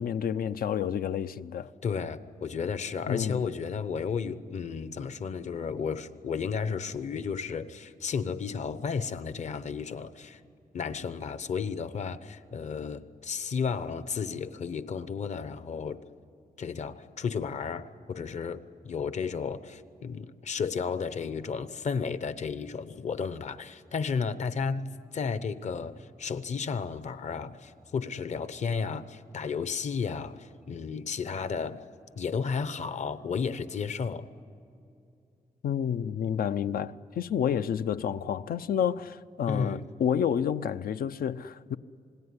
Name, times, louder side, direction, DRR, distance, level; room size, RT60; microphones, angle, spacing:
voice 1, 0.0-1.7 3.1-3.4 35.6-41.8, left 8 dB, 75° left, 0.6 m, -29 dB
voice 2, 1.8-10.4 10.7-16.0 16.6-31.8 32.2-34.3 39.5-39.8, left 5 dB, 50° left, 0.9 m, -33 dB
27.0 x 19.5 x 9.7 m
wide cardioid pair, 175°, 15 cm